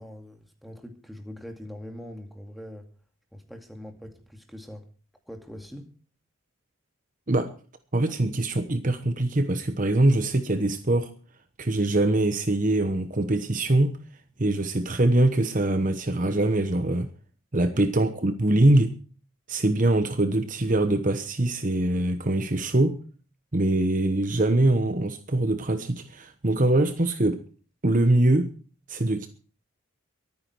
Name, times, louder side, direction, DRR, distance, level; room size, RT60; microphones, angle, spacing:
voice 1, 0.0-2.9 3.3-4.9 5.3-5.9 17.7-17.9, equal, ahead, 4 dB, 2.3 m, -42 dB
voice 2, 7.9-11.1 11.6-14.0 14.4-17.1 17.5-18.9 19.5-23.0 23.5-27.4 27.8-28.5 28.9-29.3, right 1 dB, 40° right, 9 dB, 1.0 m, -23 dB
23.5 x 9.7 x 4.6 m, 0.40 s
head